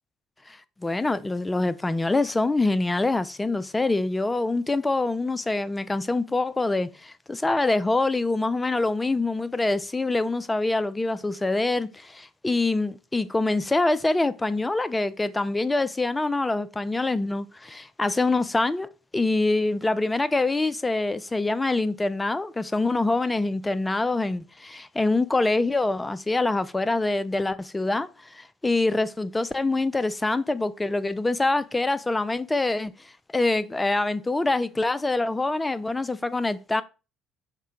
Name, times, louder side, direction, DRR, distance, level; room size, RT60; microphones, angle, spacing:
voice 1, 0.5-18.9 19.1-28.1 28.3-32.9 33.3-36.8, left 2 dB, 15° left, 0.4 m, -25 dB
5.5 x 2.1 x 3.5 m
hypercardioid pair, 60°, 0 cm